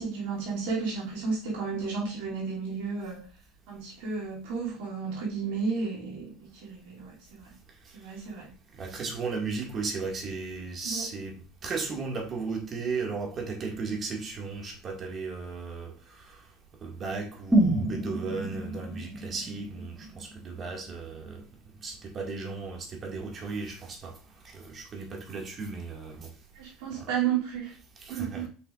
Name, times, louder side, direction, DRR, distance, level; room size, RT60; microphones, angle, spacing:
voice 1, 0.0-3.2 3.7-7.5 7.9-8.5 10.8-11.1 26.6-27.7 28.1-28.5, right 5 dB, 70° right, 3.0 m, -32 dB
voice 2, 8.8-16.4 16.8-21.4 21.8-24.2 24.4-26.3 27.0-27.1 28.0-28.5, right 4 dB, 40° right, 2.3 m, -35 dB
sound 1, 17.5-21.5 21.8-21.9, right 1 dB, 5° right, 2.3 m, -29 dB
6.6 x 5.7 x 2.6 m
hypercardioid pair, 80°, 0 cm